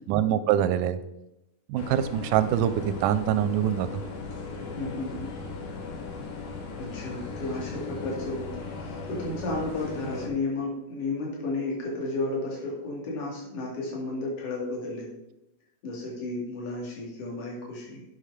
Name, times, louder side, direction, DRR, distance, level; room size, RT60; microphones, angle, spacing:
voice 1, 0.1-1.0 1.7-4.0, right 10 dB, 90° right, 12 dB, 2.1 m, -24 dB
sound 1, 1.8-10.3, left 4 dB, 80° left, 2.8 m, -37 dB
voice 2, 4.7-5.3 6.8-15.1 15.8-18.0, left 2 dB, 50° left, -3 dB, 3.4 m, -33 dB
8.4 x 6.0 x 4.9 m, 0.90 s
omnidirectional pair, 3.6 m